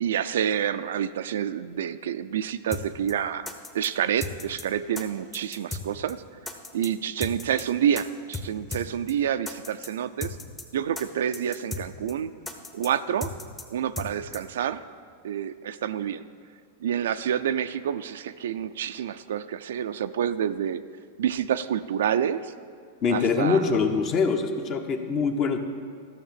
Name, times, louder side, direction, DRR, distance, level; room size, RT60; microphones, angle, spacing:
voice 1, 0.0-3.5 3.7-6.2 6.7-10.4 10.7-12.3 12.7-13.3 13.7-14.8 15.2-16.3 16.8-20.8 21.2-22.5 23.1-23.7, right 9 dB, 85° right, 11 dB, 0.5 m, -28 dB
sound 1, 2.7-2.8 3.1-3.2 3.5-3.9 4.2-4.6 5.0-5.1 5.3-5.8 6.1-6.2 6.5-6.9 7.2-7.6 8.0-8.1 8.3-8.5 8.7-8.8 9.1-9.2 9.5-9.9 10.2-10.6 11.0-11.1 11.3-11.8 12.1-12.2 12.5-12.9 13.2-13.6 14.0-14.1 14.3-14.4, left 2 dB, 10° left, 0.9 m, -35 dB
voice 2, 23.0-25.6, left 5 dB, 35° left, 6 dB, 1.0 m, -24 dB
13.0 x 6.5 x 7.6 m, 2.2 s
supercardioid pair, 145°, 0 cm